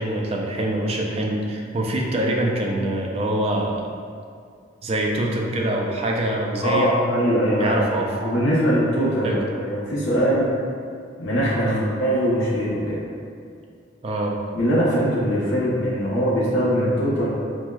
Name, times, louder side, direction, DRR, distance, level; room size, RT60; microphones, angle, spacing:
voice 1, 0.0-3.9 4.8-7.0 7.6-8.2 9.2-9.4 11.6-11.9 14.0-14.4, right 1 dB, 35° right, -1 dB, 0.3 m, -24 dB
voice 2, 6.6-7.8 8.2-10.5 11.2-13.0 14.5-17.3, equal, 70° left, -8 dB, 0.7 m, -21 dB
4.5 x 2.0 x 2.2 m, 2.3 s
head